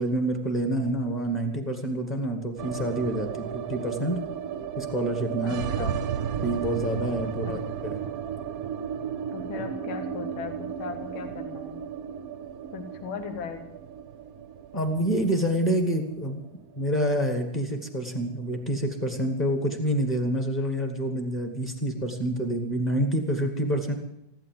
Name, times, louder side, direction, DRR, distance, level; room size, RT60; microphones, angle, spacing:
voice 1, 0.0-4.2 4.8-5.9 6.4-8.0 14.7-16.4 16.8-23.9, right 1 dB, 20° left, 4 dB, 1.8 m, -27 dB
sound 1, 2.6-18.7 18.9-19.0 19.3-20.0, right 8 dB, 65° right, 0.9 m, -34 dB
voice 2, 5.4-6.0 7.4-7.6 9.3-11.8 12.7-13.7, left 6 dB, 80° left, 5 dB, 2.0 m, -38 dB
15.5 x 12.0 x 7.7 m, 0.81 s
omnidirectional pair, 2.2 m